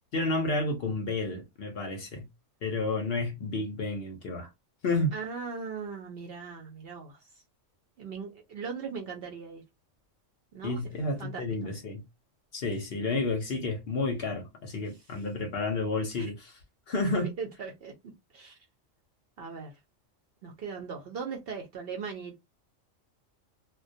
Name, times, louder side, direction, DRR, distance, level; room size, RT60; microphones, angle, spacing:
voice 1, 0.1-2.3 2.6-4.5 4.8-5.1 10.6-12.0 12.5-16.6 16.9-17.3, left 2 dB, 60° left, 0.8 m, -31 dB
voice 2, 5.1-7.3 8.0-9.6 10.5-10.8 11.2-11.4 13.0-13.2 16.2-16.3 17.1-17.9 18.3-18.6 19.4-19.7 20.4-22.4, right 5 dB, 60° right, 0.7 m, -39 dB
2.2 x 2.2 x 2.6 m
omnidirectional pair, 1.4 m